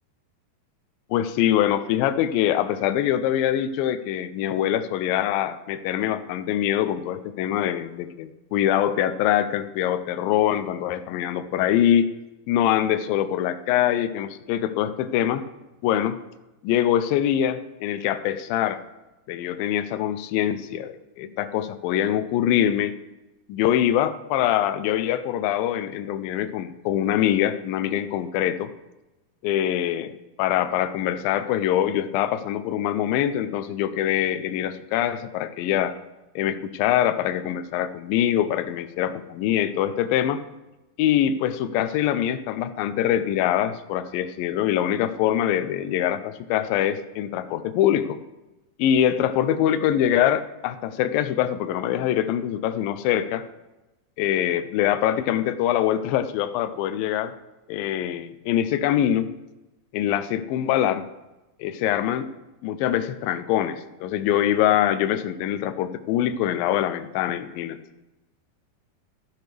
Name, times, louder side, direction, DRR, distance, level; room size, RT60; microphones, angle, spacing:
voice 1, 1.1-12.1 12.5-15.4 15.8-16.2 16.6-18.8 19.3-22.9 23.5-28.7 29.4-36.0 36.4-40.4 41.0-48.2 48.8-53.5 54.2-57.3 57.7-59.3 59.9-61.0 61.6-62.3 62.6-67.8, left 11 dB, 80° left, 11 dB, 2.1 m, -24 dB
12.5 x 10.5 x 3.3 m, 1.0 s
omnidirectional pair, 4.6 m